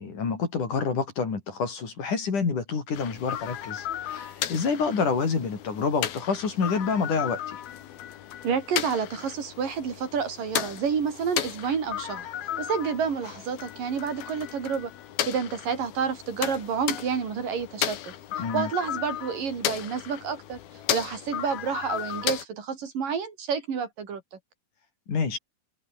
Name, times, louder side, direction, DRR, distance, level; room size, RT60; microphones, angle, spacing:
voice 1, 0.0-7.6 18.4-18.7 25.1-25.4, left 5 dB, 55° left, 5.8 m, -28 dB
sound 1, 2.9-22.5, left 11 dB, 85° left, 3.7 m, -34 dB
voice 2, 8.4-12.3 12.6-14.9 15.2-18.1 18.5-20.6 20.9-24.2, right 6 dB, 65° right, 5.0 m, -29 dB
omnidirectional pair, 4.2 m